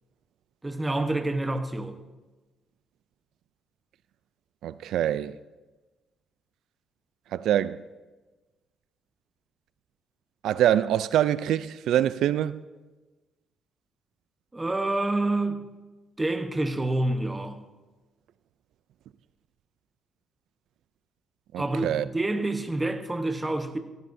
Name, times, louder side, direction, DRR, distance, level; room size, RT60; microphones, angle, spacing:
voice 1, 0.6-2.0 14.5-15.6 16.2-17.6 21.6-23.8, right 2 dB, 15° right, 0.9 m, -27 dB
voice 2, 4.6-5.4 7.3-7.8 10.4-12.6 21.5-22.0, right 11 dB, 85° right, 0.3 m, -25 dB
16.5 x 14.0 x 2.7 m
cardioid pair, 140°, 0 cm